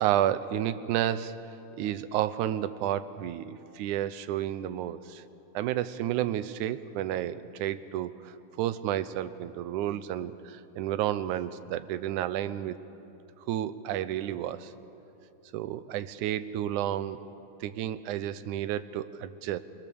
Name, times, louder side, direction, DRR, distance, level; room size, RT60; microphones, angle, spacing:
voice 1, 0.0-1.4 1.8-5.2 5.5-12.8 13.5-14.7 15.5-17.2 17.6-19.6, right 12 dB, 75° right, 13 dB, 2.1 m, -31 dB
27.0 x 23.0 x 7.0 m, 2.8 s
omnidirectional pair, 3.7 m